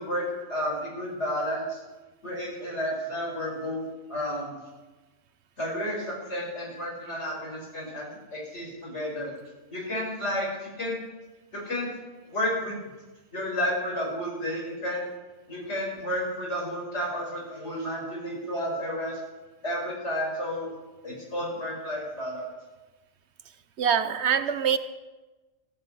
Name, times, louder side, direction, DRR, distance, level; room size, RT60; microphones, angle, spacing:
voice 1, 0.0-1.8 2.2-4.6 5.6-9.3 9.7-11.0 11.5-12.0 12.3-12.8 13.3-15.0 15.5-19.2 19.6-20.7 21.0-22.5, equal, 50° left, -2 dB, 6.3 m, -31 dB
voice 2, 23.8-24.8, right 7 dB, 60° right, 12 dB, 0.9 m, -24 dB
16.5 x 14.5 x 4.6 m, 1.2 s
omnidirectional pair, 1.4 m